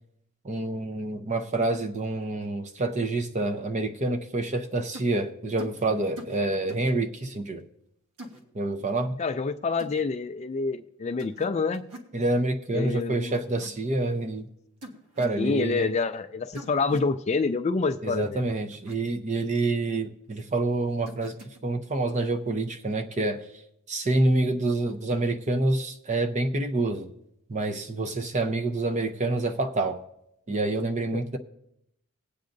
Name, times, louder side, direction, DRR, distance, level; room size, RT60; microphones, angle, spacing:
voice 1, 0.4-7.7 8.5-9.2 12.1-14.5 15.2-15.9 18.0-21.4 21.6-23.4 23.9-27.1 27.5-30.0 30.5-31.4, right 2 dB, 30° right, 6 dB, 0.6 m, -27 dB
sound 1, 4.9-5.1 5.6-5.8 6.2-6.4 6.7-6.9 8.2-8.4 9.8-10.0 11.2-11.5 11.7-12.1 13.3-13.7 14.8-15.4 16.5-17.1 18.7-19.0 21.1-21.6, right 1 dB, 85° right, 1.3 m, -43 dB
voice 2, 9.2-11.8 12.7-13.3 15.4-18.5 31.1-31.2, left 4 dB, 30° left, 9 dB, 0.3 m, -27 dB
20.0 x 8.3 x 2.6 m, 0.80 s
head